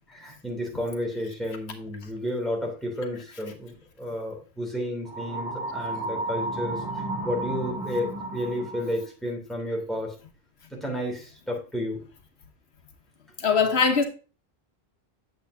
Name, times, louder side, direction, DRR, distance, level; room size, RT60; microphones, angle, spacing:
voice 1, 0.1-10.1 10.7-12.0, left 1 dB, ahead, 2.8 m, -32 dB
sound 1, 5.1-9.0, right 2 dB, 20° right, 2.0 m, -33 dB
voice 2, 13.4-14.0, left 5 dB, 85° left, 1.3 m, -21 dB
9.1 x 7.4 x 2.7 m
omnidirectional pair, 1.1 m